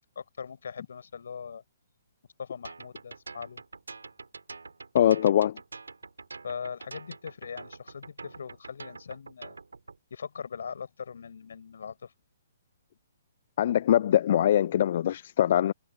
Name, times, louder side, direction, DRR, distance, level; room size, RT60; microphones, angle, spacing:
voice 1, 0.2-1.6 2.4-3.6 6.4-9.6 10.1-12.1, left 6 dB, 65° left, 5.6 m, -40 dB
sound 1, 2.6-10.0, right 4 dB, 80° right, 4.1 m, -45 dB
voice 2, 4.9-5.6 13.6-15.7, left 11 dB, 50° left, 0.5 m, -22 dB
figure-of-eight pair, 130°, 0 cm